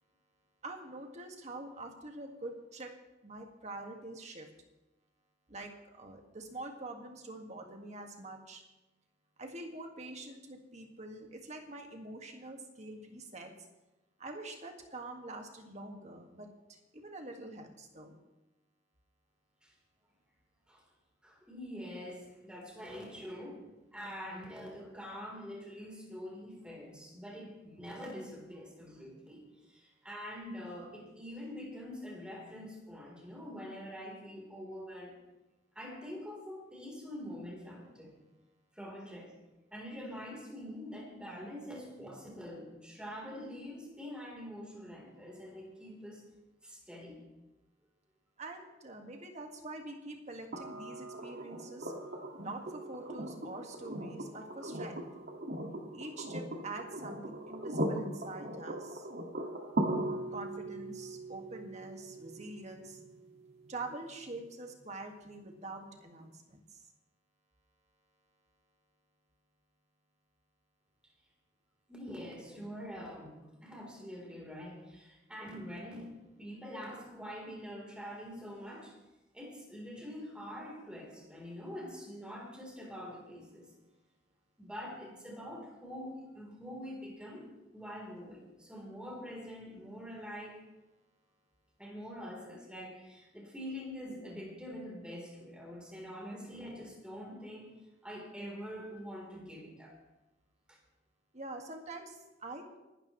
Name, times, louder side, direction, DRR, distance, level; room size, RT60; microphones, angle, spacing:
voice 1, 0.6-2.9 3.2-4.5 5.5-8.6 9.4-13.5 14.2-18.1 48.4-51.9 52.4-55.1 55.9-59.1 60.3-63.0 63.7-66.8 101.3-102.8, right 2 dB, 40° right, 3 dB, 1.8 m, -45 dB
voice 2, 21.2-23.6 23.9-35.1 35.8-38.2 38.7-39.3 39.7-46.3 46.6-47.2 71.9-76.1 76.4-78.9 79.3-83.7 84.6-87.5 87.7-90.6 91.8-97.7 98.0-99.9, equal, 5° right, -1 dB, 3.5 m, -45 dB
sound 1, 50.5-64.5 66.2-66.3, right 1 dB, 60° right, 1.9 m, -39 dB
25.0 x 12.5 x 3.1 m, 1.0 s
head